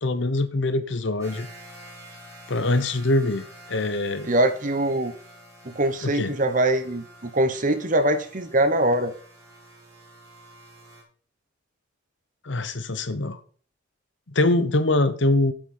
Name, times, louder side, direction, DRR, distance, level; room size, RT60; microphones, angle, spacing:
voice 1, 0.0-1.5 2.5-4.3 6.0-6.3 12.4-13.4 14.3-15.5, left 2 dB, 70° left, 1.0 m, -23 dB
sound 1, 1.2-11.0, right 1 dB, 15° right, 2.7 m, -48 dB
voice 2, 4.3-5.1 5.6-9.1, right 1 dB, 40° right, 1.1 m, -23 dB
8.9 x 7.8 x 4.4 m
head